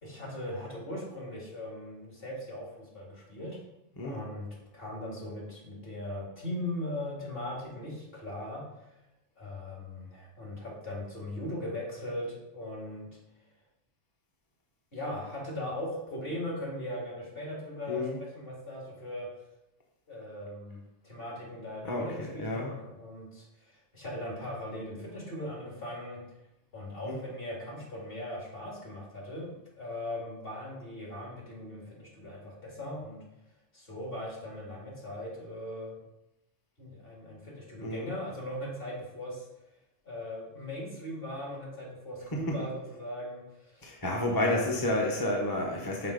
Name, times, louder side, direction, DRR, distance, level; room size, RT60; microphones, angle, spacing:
voice 1, 0.0-3.6 4.0-4.5 4.7-8.9 9.4-13.1 14.9-19.3 20.1-20.8 21.0-26.2 26.7-33.2 33.7-36.0 36.8-39.5 40.0-44.8, left 1 dB, 50° left, -3 dB, 2.4 m, -39 dB
voice 2, 17.9-18.2 21.8-22.7 27.0-27.2 37.8-38.1 42.3-42.7 43.8-46.1, left 1 dB, 20° left, -2 dB, 0.8 m, -30 dB
5.9 x 4.4 x 5.1 m, 0.89 s
omnidirectional pair, 1.3 m